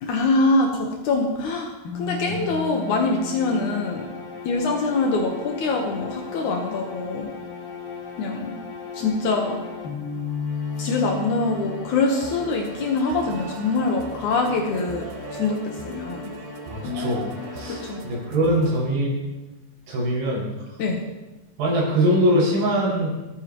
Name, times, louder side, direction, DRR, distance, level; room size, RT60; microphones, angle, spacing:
voice 1, 0.0-1.7 2.0-4.0 4.4-7.3 8.2-8.5 8.9-9.6 10.8-15.1 15.3-15.6 15.8-16.3 17.9-18.0 20.8-21.0, left 3 dB, 80° left, 1 dB, 1.7 m, -24 dB
sound 1, 1.8-18.6, left 5 dB, 55° left, 3.5 m, -35 dB
sound 2, 12.1-18.8, right 5 dB, 80° right, 2.1 m, -40 dB
voice 2, 16.7-17.2 17.5-19.2 19.9-20.4 21.6-23.2, equal, 60° right, -7 dB, 8.0 m, -22 dB
26.5 x 9.3 x 3.1 m, 1.1 s
omnidirectional pair, 5.4 m